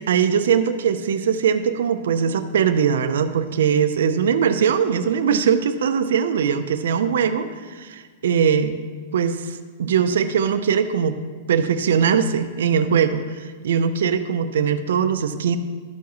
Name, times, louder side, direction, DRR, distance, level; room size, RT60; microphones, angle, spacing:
voice 1, 0.1-8.8 9.1-11.2 11.5-15.6, right 7 dB, 80° right, 10 dB, 0.6 m, -21 dB
12.5 x 7.2 x 3.1 m, 1.5 s
supercardioid pair, 175°, 0 cm